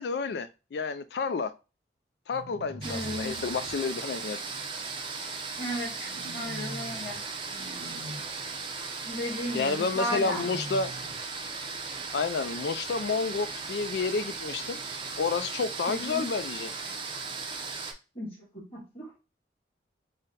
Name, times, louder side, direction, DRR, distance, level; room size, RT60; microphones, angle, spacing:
voice 1, 0.0-1.5 2.3-4.4 9.5-10.9 12.1-14.8 15.2-16.7, left 4 dB, 70° left, 0.4 m, -30 dB
sound 1, 2.3-3.7 6.1-7.2 7.5-8.2 10.0-11.2, equal, 80° right, 0.8 m, -43 dB
voice 2, 2.8-3.4 5.6-7.2 9.0-10.4 15.9-16.3 18.1-18.3 18.7-19.1, equal, 30° left, 2.2 m, -34 dB
sound 2, 2.8-17.9, right 4 dB, 25° right, 0.5 m, -37 dB
4.1 x 2.1 x 3.8 m
head